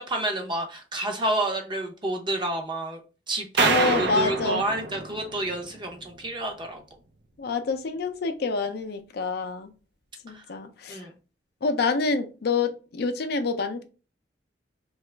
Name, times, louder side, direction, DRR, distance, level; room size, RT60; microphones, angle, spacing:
voice 1, 0.0-3.0 3.3-6.8 10.3-10.4 10.9-11.1, right 1 dB, 25° right, 0.6 m, -29 dB
voice 2, 3.6-4.6 7.4-9.7 10.2-11.1 11.6-13.8, left 4 dB, 60° left, 0.4 m, -27 dB
sound 1, 3.6-5.9, right 3 dB, 65° right, 0.6 m, -27 dB
2.9 x 2.3 x 3.2 m
head